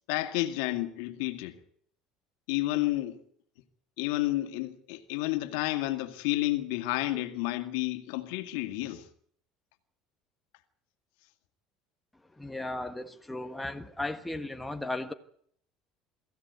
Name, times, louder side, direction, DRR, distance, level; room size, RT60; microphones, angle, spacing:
voice 1, 0.1-1.6 2.5-3.2 4.0-9.0, left 17 dB, 85° left, 2.0 m, -30 dB
voice 2, 12.4-15.1, left 2 dB, 5° left, 1.5 m, -36 dB
23.5 x 15.5 x 9.5 m
cardioid pair, 135°, 0 cm